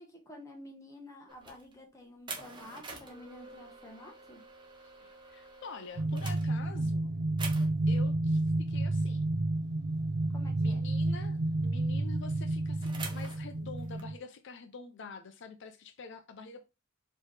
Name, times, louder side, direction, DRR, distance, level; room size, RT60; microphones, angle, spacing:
voice 1, 0.0-4.4 10.3-10.8, left 1 dB, 15° left, 1.1 m, -50 dB
sound 1, 1.3-1.7 2.3-7.0 7.4-7.9 9.9-10.2 10.5-10.6 11.0-12.2 12.8-14.0, right 3 dB, 25° right, 0.9 m, -46 dB
voice 2, 5.0-7.1 7.9-9.3 10.6-16.6, left 4 dB, 60° left, 0.5 m, -47 dB
sound 2, 6.0-14.2, right 2 dB, 60° right, 0.4 m, -30 dB
4.6 x 3.0 x 3.3 m
head